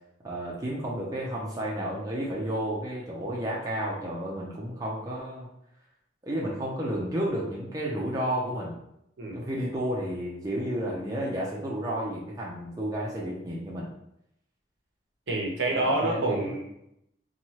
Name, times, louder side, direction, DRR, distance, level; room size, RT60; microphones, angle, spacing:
voice 1, 0.2-5.5 6.2-8.8 9.3-13.9 15.7-16.5, right 1 dB, 20° right, -4 dB, 0.5 m, -31 dB
voice 2, 15.3-16.9, right 2 dB, 70° right, -1 dB, 0.7 m, -28 dB
3.0 x 2.2 x 2.8 m, 0.78 s
head